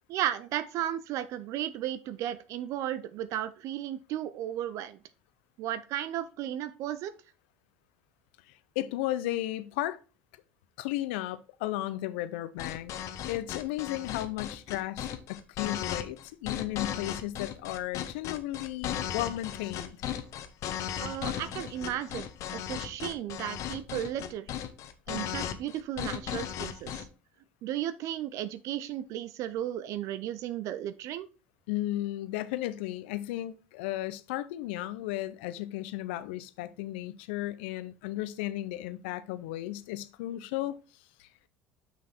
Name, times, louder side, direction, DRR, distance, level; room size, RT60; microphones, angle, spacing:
voice 1, 0.1-5.0 5.6-7.1 21.0-24.5 25.1-27.1 27.6-31.3, right 11 dB, 60° right, 0.6 m, -34 dB
voice 2, 8.8-10.0 10.8-12.9 13.3-20.0 31.7-40.8 41.2-41.3, left 15 dB, 80° left, 0.6 m, -34 dB
sound 1, 12.6-27.0, left 10 dB, 60° left, 1.0 m, -36 dB
6.0 x 5.7 x 4.3 m
hypercardioid pair, 75°, 6 cm